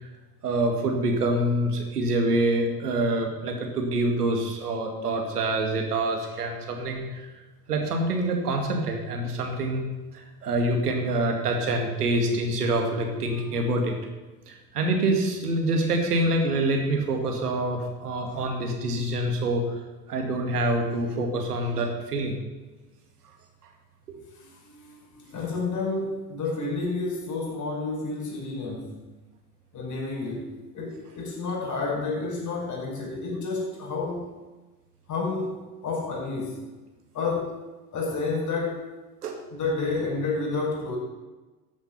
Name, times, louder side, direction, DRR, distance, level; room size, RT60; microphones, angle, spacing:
voice 1, 0.4-7.3 7.7-9.8 10.1-14.0 14.5-19.8 20.1-22.3 24.1-24.2 39.2-39.4, right 1 dB, 80° right, 3 dB, 2.2 m, -26 dB
voice 2, 24.4-29.0 29.7-34.3 35.1-36.6 37.1-37.6 37.9-38.9 39.5-41.0, left 3 dB, 40° left, -2 dB, 5.0 m, -30 dB
13.5 x 8.0 x 5.9 m, 1.2 s
figure-of-eight pair, 70°, 46 cm